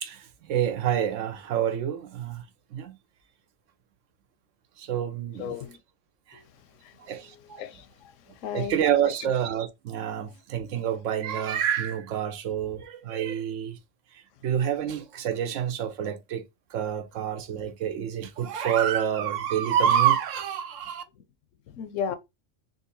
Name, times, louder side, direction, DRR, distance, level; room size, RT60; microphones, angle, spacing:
voice 1, 0.0-2.4 2.7-3.0 4.8-5.5 6.3-6.4 7.0-7.6 8.5-13.8 14.1-16.4 16.7-21.0, right 9 dB, 80° right, 1.0 m, -27 dB
voice 2, 5.4-5.8 6.3-6.4 6.8-6.9 7.6-8.1 8.4-8.8 21.7-22.2, left 8 dB, 85° left, 1.0 m, -34 dB
3.7 x 2.6 x 2.6 m
omnidirectional pair, 1.3 m